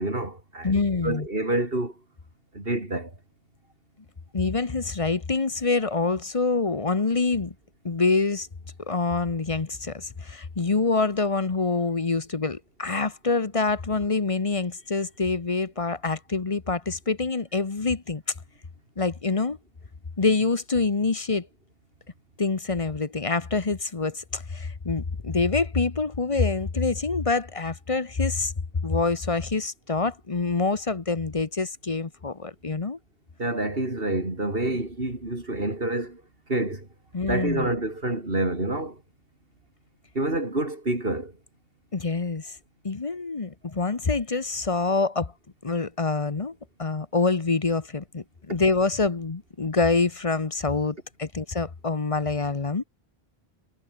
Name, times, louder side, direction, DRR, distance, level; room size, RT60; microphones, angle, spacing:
voice 1, 0.0-1.9 2.5-3.1 33.4-36.2 36.5-36.9 37.2-39.0 40.1-41.3, right 2 dB, 65° right, 4.9 m, -28 dB
voice 2, 0.6-1.3 4.3-7.5 7.8-8.5 8.8-18.2 19.0-19.6 20.2-21.5 22.4-28.5 28.8-33.0 37.1-37.7 41.9-42.6 42.8-45.3 45.6-52.8, left 3 dB, 35° left, 1.1 m, -26 dB
omnidirectional pair, 1.1 m